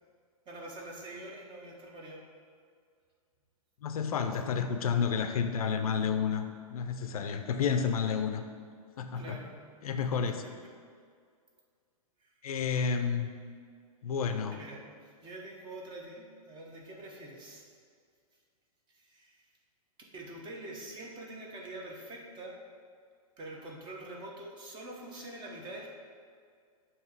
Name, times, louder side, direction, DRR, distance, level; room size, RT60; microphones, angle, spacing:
voice 1, 0.5-2.2 9.1-9.6 10.3-10.5 12.2-12.3 14.5-14.8 15.0-17.7 18.9-19.5 20.1-22.6 23.4-25.9, right 1 dB, 25° right, -1 dB, 1.1 m, -45 dB
voice 2, 3.8-8.4 9.0-9.4 9.8-10.3 12.4-13.3 14.0-14.5, left 6 dB, 70° left, 7 dB, 0.5 m, -30 dB
7.3 x 2.9 x 4.6 m, 2.1 s
hypercardioid pair, 115°, 19 cm